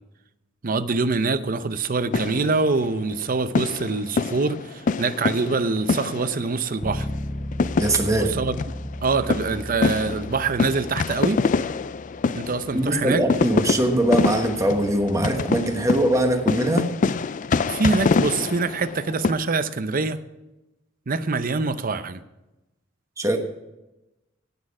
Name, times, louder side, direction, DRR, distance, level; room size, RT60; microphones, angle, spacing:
voice 1, 0.6-7.1 8.1-8.6 9.0-11.4 12.3-13.2 17.7-20.2 21.1-22.2, right 4 dB, 45° right, 12 dB, 0.6 m, -24 dB
sound 1, 2.1-3.2 3.5-6.7 7.0-7.1 7.5-19.3, left 4 dB, 40° left, 0.4 m, -25 dB
Bass guitar, 6.8-16.6, left 1 dB, 10° left, 0.8 m, -37 dB
voice 2, 7.8-8.3 12.7-16.9 23.2-23.4, right 1 dB, 15° right, 5 dB, 1.2 m, -21 dB
17.0 x 6.5 x 4.9 m, 0.98 s
head